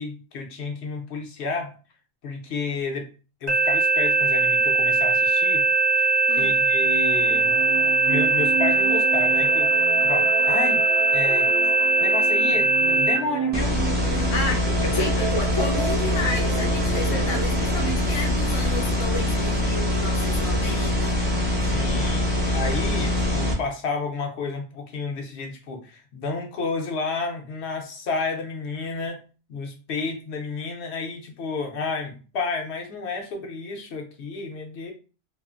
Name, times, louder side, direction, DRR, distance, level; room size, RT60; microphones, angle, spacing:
voice 1, 0.0-1.7 2.2-3.1 3.4-5.6 6.0-6.1 6.3-7.6 8.1-9.7 10.0-10.8 11.1-11.5 12.0-13.8 14.0-14.2 14.7-15.3 17.1-17.3 21.6-22.3 22.5-29.2 29.5-34.9, left 4 dB, 75° left, 0.9 m, -31 dB
sound 1, 3.5-13.2, right 3 dB, 45° right, 0.7 m, -20 dB
sound 2, 6.8-18.0, right 6 dB, 70° right, 0.8 m, -32 dB
sound 3, 13.5-23.5, left 1 dB, 10° right, 0.6 m, -24 dB
voice 2, 14.1-14.6 14.9-21.2, left 3 dB, 45° left, 0.4 m, -31 dB
2.5 x 2.4 x 2.4 m
omnidirectional pair, 1.1 m